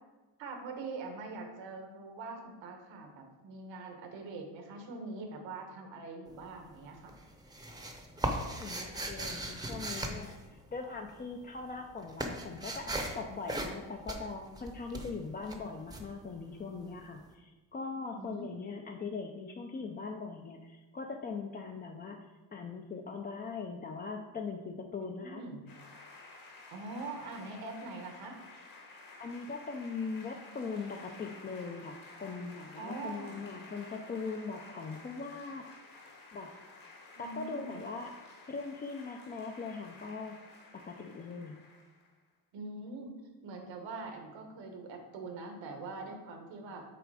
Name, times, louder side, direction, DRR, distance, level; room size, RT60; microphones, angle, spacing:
voice 1, 0.4-7.1 13.7-13.9 18.2-18.5 25.0-25.6 26.7-28.4 32.8-33.4 37.1-37.8 42.5-43.2 43.4-46.8, right 3 dB, 90° right, 3 dB, 1.4 m, -43 dB
sound 1, 6.3-6.8 7.1-11.1 11.4-17.0, right 1 dB, 10° right, 0.7 m, -38 dB
voice 2, 8.5-25.4 29.2-35.7 36.3-36.5 37.2-38.1 38.5-40.4 40.7-41.6, left 4 dB, 25° left, 3 dB, 0.4 m, -41 dB
sound 2, 25.7-42.1, left 3 dB, 50° left, 1.6 m, -53 dB
6.8 x 4.0 x 4.9 m, 1.2 s
cardioid pair, 130°, 43 cm